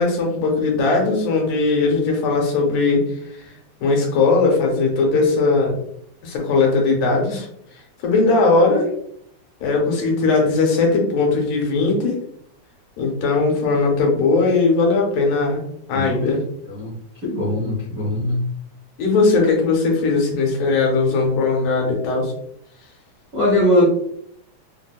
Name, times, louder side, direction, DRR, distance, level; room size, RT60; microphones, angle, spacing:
voice 1, 0.0-3.0 3.4-3.5 3.8-5.8 6.2-7.5 8.0-8.9 9.6-12.2 13.0-15.6 15.9-16.4 19.0-22.3, left 3 dB, 85° left, 0 dB, 2.3 m, -19 dB
voice 2, 15.9-16.3 16.7-16.9 17.2-18.4 23.3-23.8, left 1 dB, 85° right, -8 dB, 0.8 m, -20 dB
4.8 x 2.1 x 2.3 m, 0.70 s
omnidirectional pair, 3.4 m